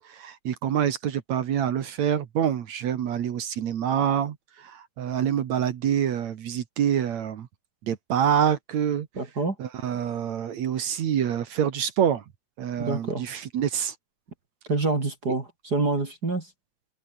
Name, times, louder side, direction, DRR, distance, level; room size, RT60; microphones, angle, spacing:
voice 1, 0.0-4.4 4.6-7.5 7.9-9.1 9.6-12.2 12.6-13.9, right 9 dB, 55° right, 2.4 m, -26 dB
voice 2, 9.1-9.5 12.8-13.2 14.7-16.5, right 3 dB, 25° right, 3.2 m, -27 dB
open air
omnidirectional pair, 4.2 m